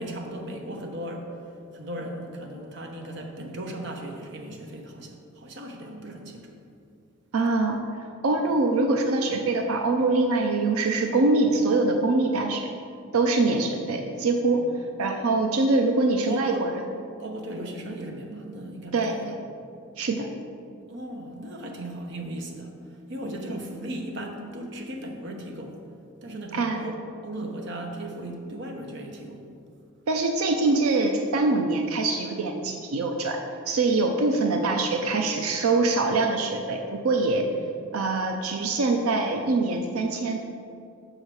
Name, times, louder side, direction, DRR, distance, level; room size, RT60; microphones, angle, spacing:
voice 1, 0.0-1.3 1.7-6.5 8.5-8.6 13.7-13.8 14.6-14.7 16.3-16.7 17.2-19.3 20.9-25.8 26.2-29.5 37.4-37.6, right 1 dB, 55° right, 3 dB, 0.9 m, -37 dB
voice 2, 7.3-7.8 8.2-12.7 13.1-14.6 15.0-16.7 18.9-19.4 20.0-20.3 26.5-26.8 30.1-33.4 33.7-37.5 37.9-40.4, right 3 dB, 90° right, 3 dB, 0.5 m, -24 dB
6.4 x 4.9 x 6.1 m, 2.4 s
head